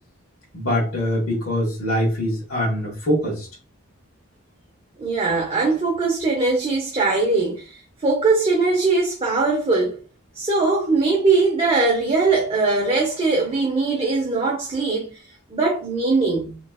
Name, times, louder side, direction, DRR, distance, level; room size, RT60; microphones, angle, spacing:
voice 1, 0.5-3.5, equal, 75° left, 1.2 m, -23 dB
voice 2, 5.0-10.0 10.3-15.2 15.5-16.6, right 3 dB, 25° right, 0.6 m, -21 dB
3.2 x 3.0 x 2.2 m
head